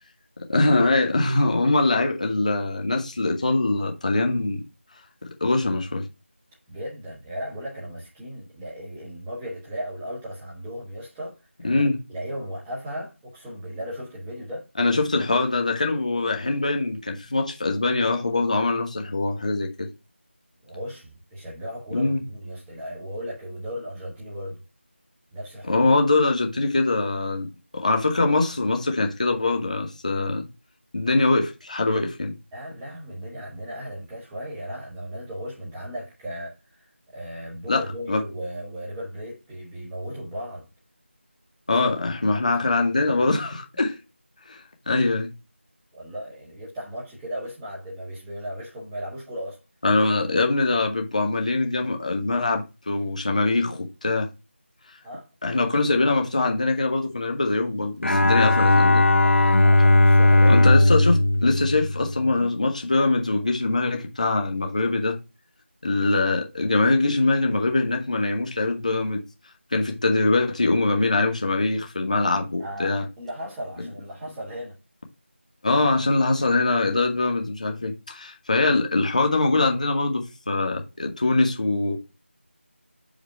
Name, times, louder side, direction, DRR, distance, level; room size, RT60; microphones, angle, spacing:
voice 1, 0.5-4.6 5.2-6.1 11.6-12.0 14.8-19.9 21.9-22.2 25.7-27.5 27.7-30.4 30.9-32.3 37.7-37.8 38.1-38.2 41.7-44.0 44.5-44.6 44.9-45.3 49.8-54.3 55.4-59.1 60.5-65.2 65.8-69.2 69.7-73.0 75.6-82.0, left 2 dB, 35° left, 1.5 m, -23 dB
voice 2, 6.7-14.7 20.6-24.6 25.3-25.9 32.5-40.7 42.3-42.4 43.2-43.3 45.9-49.6 55.0-55.3 59.2-60.6 72.6-74.8 75.7-75.9, equal, 5° right, 0.6 m, -36 dB
Bowed string instrument, 58.0-62.5, left 2 dB, 75° left, 0.8 m, -17 dB
6.1 x 5.2 x 3.3 m
figure-of-eight pair, 170°, 7 cm